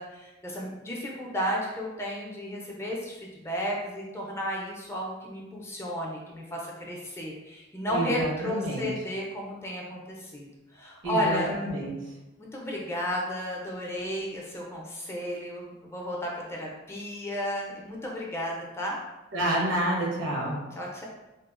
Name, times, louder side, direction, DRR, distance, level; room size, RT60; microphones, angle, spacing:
voice 1, 0.0-11.6 12.4-19.0 20.8-21.1, equal, 15° left, -3 dB, 0.4 m, -33 dB
voice 2, 7.9-8.8 11.0-11.9 19.3-20.6, right 1 dB, 85° right, -4 dB, 0.9 m, -28 dB
2.8 x 2.0 x 2.4 m, 1.0 s
head